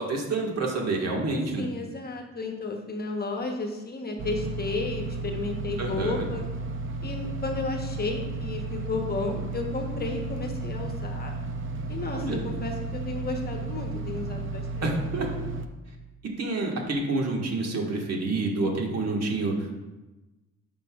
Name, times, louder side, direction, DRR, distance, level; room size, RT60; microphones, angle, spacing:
voice 1, 0.0-1.7 5.8-6.3 12.1-12.5 14.8-15.3 16.2-19.8, right 2 dB, 60° right, 0 dB, 1.6 m, -28 dB
voice 2, 1.6-6.4 7.0-11.3 11.9-14.9, left 3 dB, 30° left, 3 dB, 1.0 m, -33 dB
sound 1, 4.2-15.7, right 3 dB, 40° right, 0.7 m, -33 dB
10.5 x 5.5 x 2.4 m, 1.1 s
cardioid pair, 90°, 30 cm